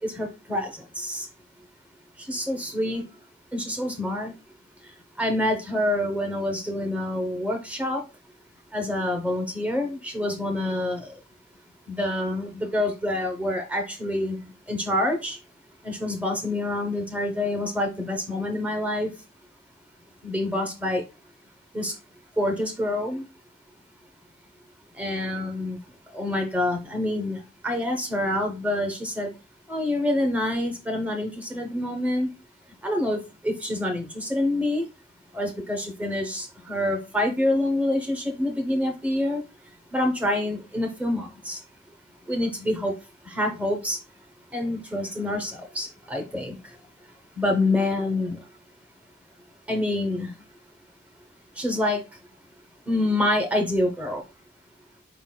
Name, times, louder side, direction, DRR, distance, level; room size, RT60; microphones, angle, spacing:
voice 1, 0.0-1.3 2.3-3.0 3.5-4.3 5.2-8.0 8.7-11.1 11.9-15.4 15.8-19.1 20.2-21.0 21.7-21.9 22.4-23.3 25.0-25.8 26.1-29.3 29.7-32.3 32.8-34.9 35.3-39.4 39.9-41.6 42.3-42.9 43.2-44.0 44.5-46.6 47.4-48.4 49.7-50.3 51.6-52.0 52.9-54.2, left 1 dB, 5° right, 3 dB, 0.7 m, -27 dB
4.8 x 3.8 x 2.2 m, 0.29 s
head